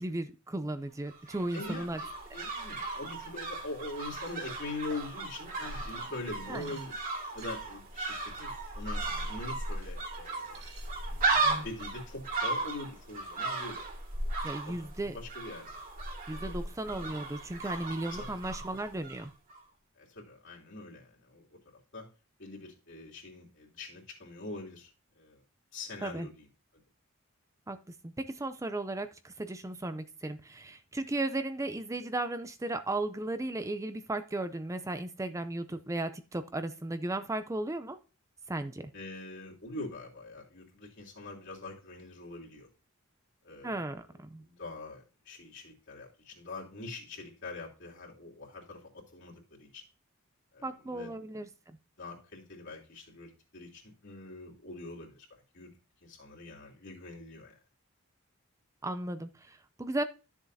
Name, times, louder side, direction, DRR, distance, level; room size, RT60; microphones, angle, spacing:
voice 1, 0.0-2.0 6.5-6.7 14.4-15.2 16.3-19.3 26.0-26.3 27.7-38.0 38.5-38.9 43.6-44.4 50.6-51.5 58.8-60.0, right 2 dB, 15° right, 11 dB, 0.5 m, -35 dB
sound 1, 1.1-19.2 19.5-19.6, right 3 dB, 40° right, 2.4 m, -36 dB
voice 2, 1.4-6.9 7.3-10.6 11.6-13.8 14.6-14.7 15.1-15.7 18.1-18.3 20.0-21.6 21.9-22.1 22.4-25.4 25.7-26.4 38.9-42.7 43.4-44.0 44.4-49.8 50.5-51.1 52.0-55.7 56.0-57.5, left 2 dB, 60° left, -2 dB, 2.9 m, -43 dB
sound 2, 3.9-9.9 10.2-11.9, right 1 dB, 60° right, 3.8 m, -52 dB
12.5 x 7.2 x 2.7 m, 0.33 s
head